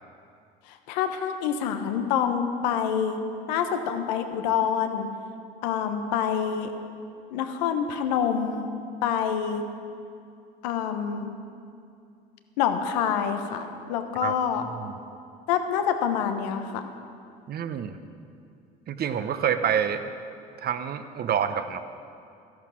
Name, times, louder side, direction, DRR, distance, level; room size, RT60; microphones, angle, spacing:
voice 1, 0.7-3.2 3.5-5.1 5.6-6.7 7.3-8.7 9.0-9.6 10.6-11.3 12.6-14.6 15.5-16.9, left 8 dB, 85° left, 7 dB, 1.0 m, -26 dB
voice 2, 17.5-18.0 18.9-20.1 20.6-21.8, right 8 dB, 50° right, 10 dB, 0.9 m, -27 dB
13.5 x 11.0 x 6.2 m, 2.5 s
supercardioid pair, 80°, 21 cm